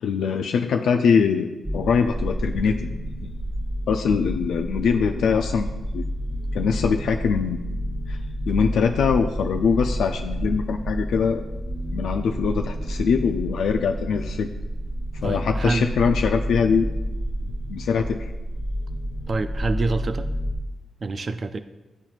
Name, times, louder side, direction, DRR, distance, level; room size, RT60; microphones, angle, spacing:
voice 1, 0.0-1.5 1.7-2.9 3.2-3.3 3.9-6.1 6.5-7.7 8.1-8.2 8.5-11.4 11.9-14.5 15.2-16.9 17.7-18.3, left 6 dB, 85° left, 4 dB, 0.4 m, -22 dB
sound 1, 1.6-20.5, equal, 10° right, 0.9 m, -29 dB
voice 2, 15.2-15.9 19.3-20.3 21.0-21.6, right 3 dB, 40° right, 10 dB, 0.4 m, -27 dB
12.5 x 4.4 x 2.4 m, 1.1 s
cardioid pair, 100°, 0 cm